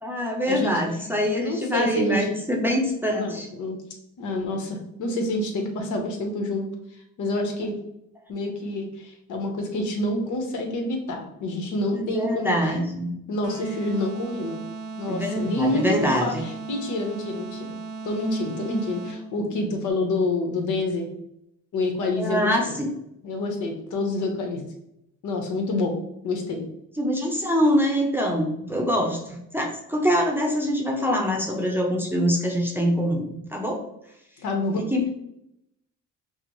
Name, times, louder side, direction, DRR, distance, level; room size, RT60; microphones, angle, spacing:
voice 1, 0.0-3.5 12.0-13.1 15.1-16.4 19.5-19.6 22.2-22.9 27.0-33.8 34.8-35.1, equal, 5° right, 0 dB, 0.7 m, -24 dB
voice 2, 1.4-2.3 3.1-3.8 4.2-6.7 7.2-7.7 8.3-12.6 13.3-14.6 15.0-17.7 18.0-21.1 21.7-22.8 23.2-24.7 25.2-25.9 26.2-26.6 34.4-34.8, left 2 dB, 80° left, 3 dB, 1.0 m, -27 dB
sound 1, 13.4-19.4, right 4 dB, 55° right, 0.7 m, -36 dB
5.7 x 2.0 x 3.1 m, 0.79 s
cardioid pair, 90°, 30 cm